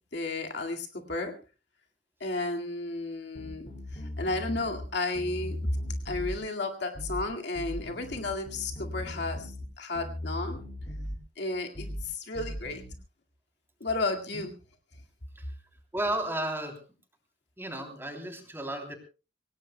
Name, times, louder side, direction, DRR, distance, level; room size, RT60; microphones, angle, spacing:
voice 1, 0.1-1.3 2.2-5.7 6.1-10.6 11.4-12.8 13.8-14.5, left 2 dB, 65° left, 2 dB, 2.1 m, -33 dB
sound 1, 3.3-4.9 5.1-6.4 6.9-7.3 7.5-9.7 9.9-11.2 11.7-12.1 12.3-12.9, left 1 dB, 40° left, 4.3 m, -38 dB
voice 2, 15.9-16.8 17.6-19.0, right 1 dB, 15° right, 4 dB, 3.1 m, -33 dB
25.5 x 17.5 x 2.2 m, 0.32 s
head